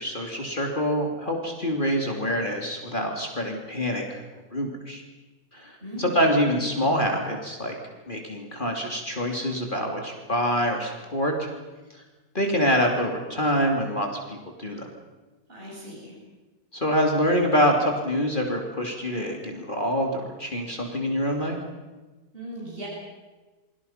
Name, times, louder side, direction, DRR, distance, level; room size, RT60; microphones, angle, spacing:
voice 1, 0.0-4.2 4.5-5.0 5.5-7.8 8.1-11.5 12.3-14.8 16.7-21.6, equal, 30° left, 1 dB, 3.1 m, -26 dB
voice 2, 5.8-6.3 15.5-16.1 22.3-22.9, right 1 dB, 35° right, -4 dB, 7.6 m, -38 dB
29.0 x 24.0 x 5.9 m, 1.2 s
omnidirectional pair, 1.6 m